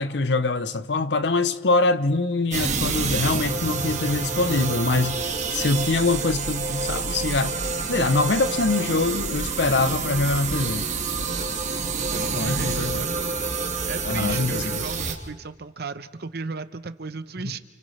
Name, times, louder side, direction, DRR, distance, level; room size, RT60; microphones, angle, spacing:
voice 1, 0.0-7.6 7.9-10.8 12.3-13.1 14.0-14.8, left 3 dB, 70° left, 0.8 m, -24 dB
sound 1, 2.5-15.1, right 4 dB, 40° right, 1.6 m, -28 dB
voice 2, 12.1-13.3 13.9-17.6, right 4 dB, 60° right, 0.9 m, -35 dB
29.5 x 29.0 x 3.3 m
head